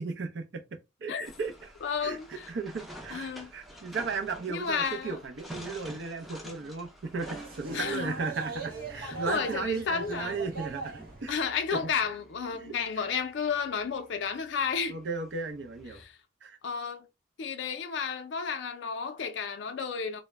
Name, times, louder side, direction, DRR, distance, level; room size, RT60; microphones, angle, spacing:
voice 1, 0.0-1.7 2.0-11.4 11.7-11.8 12.5-13.0 14.9-16.0 16.4-16.6, right 4 dB, 65° right, 0.5 m, -36 dB
sound 1, 1.2-16.1, equal, ahead, 0.4 m, -50 dB
voice 2, 1.8-2.5 3.1-3.5 4.5-5.2 7.7-8.1 9.0-10.4 11.3-15.0 15.9-16.2 16.6-17.1 17.4-20.2, left 6 dB, 70° left, 0.4 m, -32 dB
sound 2, 7.2-11.4, right 3 dB, 50° right, 0.9 m, -40 dB
2.1 x 2.0 x 3.3 m
head